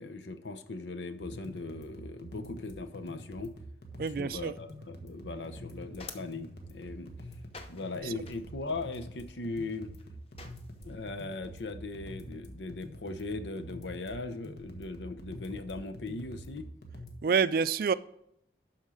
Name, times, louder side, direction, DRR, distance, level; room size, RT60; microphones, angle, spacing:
voice 1, 0.0-3.5 4.0-7.1 7.7-9.9 10.8-16.7, left 3 dB, 85° left, 0.8 m, -39 dB
sound 1, 1.2-17.2, equal, 60° left, 1.3 m, -47 dB
sound 2, 1.7-6.4 6.6-16.7, equal, 5° left, 1.5 m, -58 dB
voice 2, 4.0-4.5 17.2-17.9, right 6 dB, 55° right, 0.3 m, -27 dB
sound 3, 5.3-11.0, left 4 dB, 35° left, 0.7 m, -52 dB
12.0 x 4.5 x 4.9 m
head